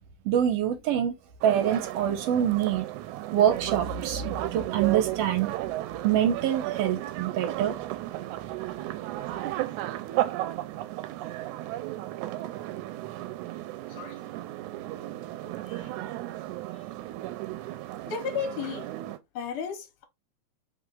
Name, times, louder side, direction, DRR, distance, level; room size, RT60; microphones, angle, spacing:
voice 1, 0.2-1.1 1.4-2.9 3.3-4.2 4.5-5.5 6.0-7.8, right 10 dB, 75° right, 1.5 m, -25 dB
sound 1, 1.4-19.2, right 15 dB, 90° right, 2.0 m, -34 dB
voice 2, 13.9-14.2 15.4-15.9 16.7-16.8 18.1-18.9 19.3-20.0, left 6 dB, 60° left, 1.5 m, -35 dB
4.4 x 3.1 x 3.8 m
omnidirectional pair, 3.3 m